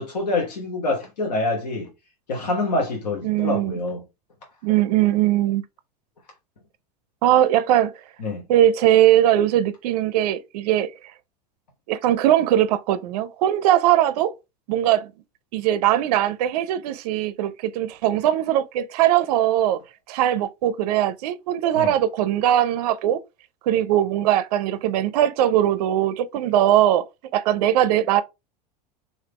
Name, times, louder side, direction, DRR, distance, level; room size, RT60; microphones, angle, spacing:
voice 1, 0.0-1.9 2.3-4.0 8.2-8.4 21.7-22.0, left 2 dB, 85° left, 1.0 m, -26 dB
voice 2, 3.2-3.8 4.6-5.6 7.2-7.9 8.5-10.9 11.9-14.3 14.7-15.1 15.5-19.8 20.1-23.2 23.6-27.1 27.3-28.2, right 12 dB, 70° right, 0.4 m, -20 dB
3.3 x 2.7 x 3.1 m
hypercardioid pair, 95°, 21 cm